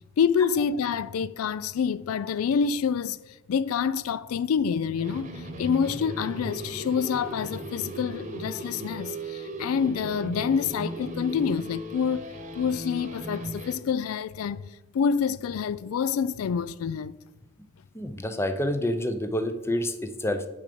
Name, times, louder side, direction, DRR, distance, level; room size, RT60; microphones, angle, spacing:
voice 1, 0.2-3.2 3.5-14.7 14.9-17.1, left 6 dB, 80° left, 0.3 m, -27 dB
sound 1, 5.0-13.8, right 1 dB, 35° right, 1.0 m, -37 dB
voice 2, 17.9-20.5, left 1 dB, 10° left, 0.6 m, -28 dB
7.1 x 5.0 x 6.7 m
head